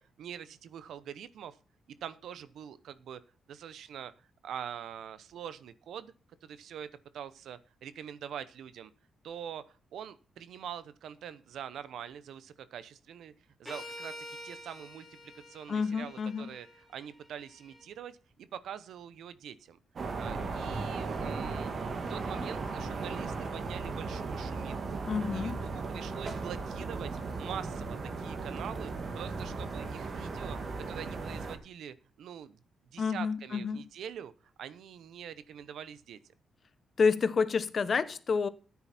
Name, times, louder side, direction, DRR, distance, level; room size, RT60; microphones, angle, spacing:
voice 1, 0.0-1.6 2.0-3.2 3.5-6.1 6.4-6.9 7.1-8.9 9.2-13.3 13.6-14.2 14.4-19.8 20.2-21.7 22.1-25.0 25.3-30.6 30.9-32.6 32.9-36.2, right 9 dB, 85° right, 0.9 m, -44 dB
sound 1, 13.6-17.8, left 1 dB, ahead, 3.1 m, -48 dB
voice 2, 15.7-16.5 25.0-25.6 33.0-33.8 37.0-38.5, left 5 dB, 45° left, 1.0 m, -29 dB
sound 2, 20.0-31.6, right 4 dB, 45° right, 2.2 m, -36 dB
14.0 x 9.6 x 4.3 m
cardioid pair, 120°, 0 cm